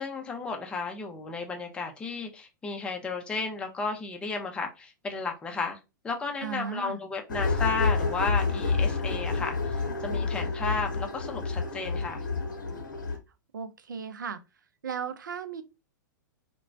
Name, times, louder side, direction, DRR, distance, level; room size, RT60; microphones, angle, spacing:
voice 1, 0.0-5.8 6.0-12.2, left 4 dB, 10° left, 0.5 m, -33 dB
voice 2, 6.4-7.0 13.5-14.4 14.8-15.6, right 6 dB, 70° right, 0.4 m, -35 dB
sound 1, 7.3-13.2, left 4 dB, 70° left, 0.7 m, -29 dB
2.9 x 2.1 x 2.5 m
figure-of-eight pair, 100°, 11 cm